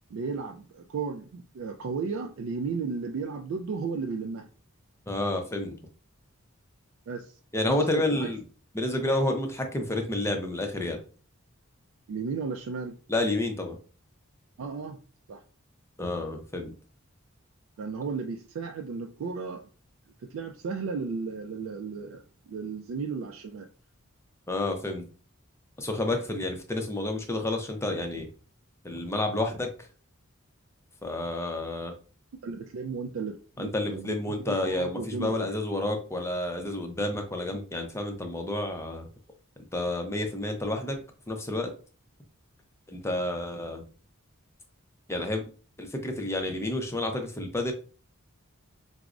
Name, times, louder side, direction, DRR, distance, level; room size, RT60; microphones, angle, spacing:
voice 1, 0.1-4.5 7.1-8.3 12.1-13.0 14.6-15.0 15.3-15.4 17.8-19.7 20.2-23.7 32.4-35.5, right 5 dB, 65° right, 0.3 m, -34 dB
voice 2, 5.1-5.8 7.5-8.4 8.7-11.0 13.1-13.8 16.0-16.7 24.5-25.1 25.8-28.3 28.8-29.9 31.0-31.9 33.6-39.1 39.7-41.0 41.3-41.7 42.9-43.8 45.1-45.5 45.8-47.7, left 1 dB, 15° left, 0.5 m, -30 dB
4.5 x 2.0 x 2.4 m
head